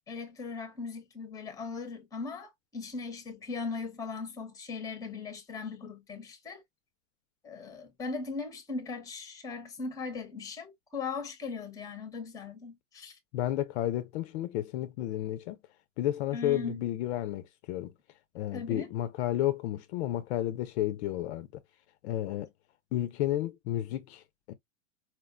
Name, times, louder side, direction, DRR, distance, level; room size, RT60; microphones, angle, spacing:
voice 1, 0.1-6.6 7.4-13.2 16.3-16.8 18.5-18.9, left 4 dB, 10° left, 0.7 m, -39 dB
voice 2, 13.3-15.6 16.0-17.9 18.3-21.6 22.0-22.5 22.9-24.5, left 13 dB, 60° left, 0.5 m, -32 dB
4.4 x 2.1 x 2.3 m
supercardioid pair, 140°, 38 cm